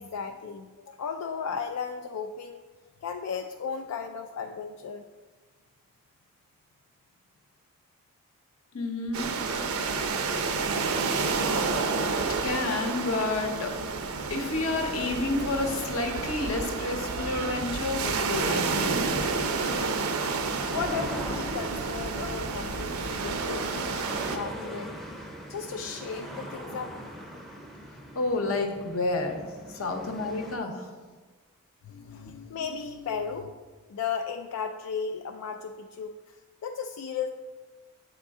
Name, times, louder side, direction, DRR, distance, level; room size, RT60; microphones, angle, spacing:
voice 1, 0.0-2.6 3.0-5.0 20.7-23.7 24.3-25.0 25.5-26.9 31.8-33.6 33.9-37.3, left 6 dB, 85° left, 5 dB, 0.3 m, -35 dB
voice 2, 8.7-9.3 12.2-13.7 14.3-19.2 28.1-29.4 29.8-30.9, left 2 dB, 65° left, 4 dB, 0.8 m, -30 dB
sound 1, 9.1-24.4, right 4 dB, 70° right, 0.5 m, -30 dB
sound 2, 17.1-30.6, equal, ahead, 0.5 m, -42 dB
8.5 x 3.7 x 3.6 m, 1.4 s
head